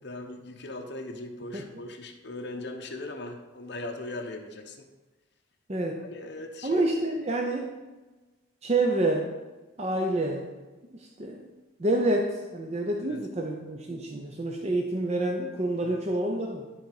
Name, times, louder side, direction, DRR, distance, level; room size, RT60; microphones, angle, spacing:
voice 1, 0.0-4.8 6.0-6.8 13.0-13.2 15.8-16.0, left 2 dB, 55° left, 2 dB, 0.9 m, -39 dB
voice 2, 6.6-7.7 8.6-9.3 9.8-10.5 11.0-11.5 11.8-16.7, right 2 dB, 30° right, 1 dB, 0.6 m, -28 dB
11.5 x 4.0 x 4.8 m, 1.2 s
head